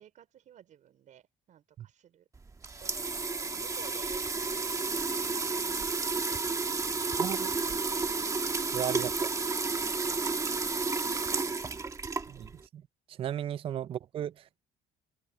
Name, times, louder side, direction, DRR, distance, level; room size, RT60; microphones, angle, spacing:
voice 1, 0.0-2.3 2.8-4.1 4.5-8.0 8.6-8.9 9.2-9.4 9.7-11.4 13.5-13.6, right 10 dB, 55° right, 4.7 m, -57 dB
sound 1, 2.4-12.6, right 4 dB, 20° right, 1.3 m, -31 dB
voice 2, 7.2-7.5 8.7-9.3 12.3-12.8 13.1-14.6, right 10 dB, 35° right, 0.4 m, -35 dB
open air
cardioid pair, 130°, 16 cm